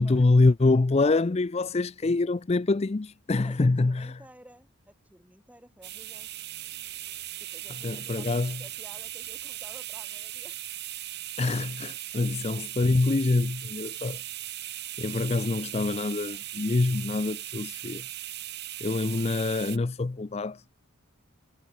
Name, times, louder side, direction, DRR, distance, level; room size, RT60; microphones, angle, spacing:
voice 1, 0.0-4.2 7.8-8.6 11.4-14.2 15.0-18.0 18.8-20.6, left 3 dB, 30° left, 0.4 m, -25 dB
voice 2, 3.4-6.3 7.4-10.6 12.1-12.2, right 1 dB, 5° right, 6.2 m, -53 dB
sound 1, 5.6-10.3, right 1 dB, 75° right, 6.2 m, -63 dB
sound 2, 5.8-19.8, right 14 dB, 50° right, 3.8 m, -38 dB
head